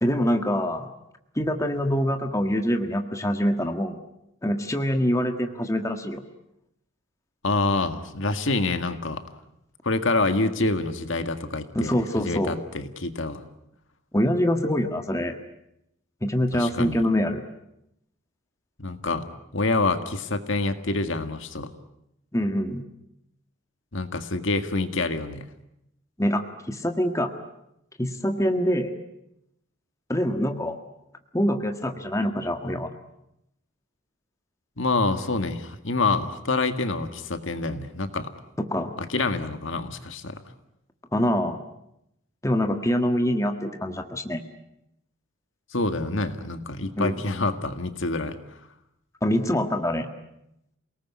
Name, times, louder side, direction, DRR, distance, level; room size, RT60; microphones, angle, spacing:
voice 1, 0.0-0.9 1.3-4.0 4.4-6.2 11.7-12.5 14.1-15.3 16.2-17.5 22.3-22.8 26.2-27.3 28.0-28.9 30.1-30.8 31.3-32.9 38.6-39.0 41.1-41.6 42.4-44.4 47.0-47.2 49.2-50.1, equal, 15° left, 6 dB, 1.6 m, -25 dB
voice 2, 7.4-9.2 9.8-13.4 16.5-17.0 18.8-19.3 19.5-21.7 23.9-25.4 34.8-38.3 39.0-40.4 45.7-48.4, left 3 dB, 60° left, 8 dB, 1.8 m, -27 dB
29.0 x 19.0 x 9.7 m, 0.82 s
head